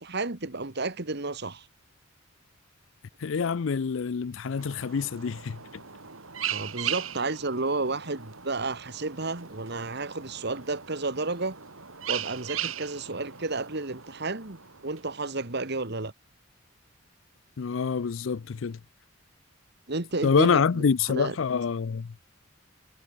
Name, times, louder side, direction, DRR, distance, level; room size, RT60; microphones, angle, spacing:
voice 1, 0.0-1.7 6.5-11.6 12.1-16.1 19.9-20.8 21.1-21.4, right 3 dB, 55° right, 1.9 m, -32 dB
voice 2, 3.2-5.6 17.6-18.8 20.2-22.1, left 6 dB, 70° left, 0.5 m, -26 dB
sound 1, 4.6-15.5, right 10 dB, 90° right, 4.1 m, -38 dB
head